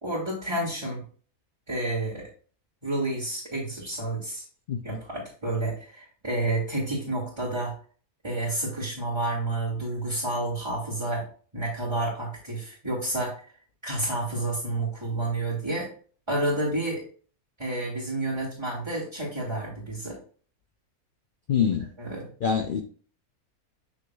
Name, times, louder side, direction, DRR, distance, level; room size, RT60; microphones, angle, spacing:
voice 1, 0.0-1.0 1.7-2.3 2.8-4.4 4.8-7.7 8.2-11.2 11.5-13.3 13.8-15.9 16.3-17.0 17.6-20.2 22.0-22.2, right 2 dB, 20° right, 2.5 m, -30 dB
voice 2, 4.7-5.0 21.5-21.9 22.4-22.8, left 7 dB, 90° left, 0.4 m, -25 dB
7.8 x 6.1 x 2.3 m
omnidirectional pair, 1.6 m